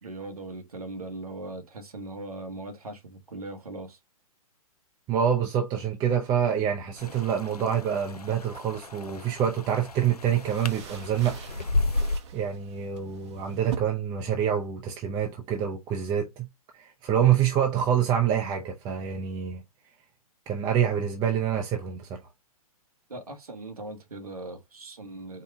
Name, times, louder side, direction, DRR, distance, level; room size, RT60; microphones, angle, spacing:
voice 1, 0.0-4.0 23.1-25.4, right 2 dB, 75° right, 1.5 m, -39 dB
voice 2, 5.1-11.4 12.3-16.5 16.8-19.6 20.5-22.2, right 9 dB, 20° right, 0.6 m, -26 dB
sound 1, 7.0-12.2, left 2 dB, 85° left, 0.6 m, -33 dB
sound 2, 7.0-13.8, right 7 dB, 50° right, 0.9 m, -46 dB
4.7 x 2.3 x 4.6 m
figure-of-eight pair, 115°, 19 cm